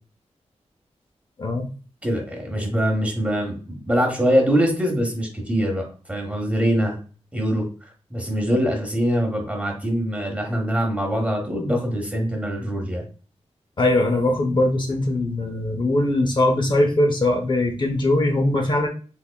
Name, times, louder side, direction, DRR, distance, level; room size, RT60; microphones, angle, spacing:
voice 1, 2.0-7.0 7.3-7.7 8.1-13.1, equal, 10° right, 1 dB, 1.0 m, -23 dB
voice 2, 13.8-18.9, left 1 dB, 40° left, 2 dB, 0.6 m, -21 dB
3.6 x 3.3 x 2.2 m, 0.37 s
wide cardioid pair, 150°, 12 cm